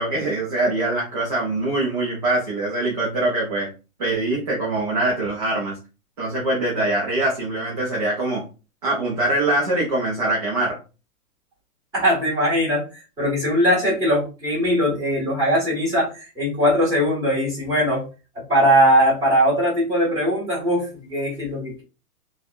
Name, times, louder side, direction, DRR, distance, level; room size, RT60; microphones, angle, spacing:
voice 1, 0.0-3.7 4.0-5.8 6.2-8.4 8.8-10.8, right 2 dB, 30° right, -4 dB, 0.5 m, -23 dB
voice 2, 11.9-18.0 18.3-21.8, equal, 10° right, -9 dB, 1.4 m, -20 dB
3.2 x 2.2 x 2.4 m, 0.32 s
hypercardioid pair, 165°, 46 cm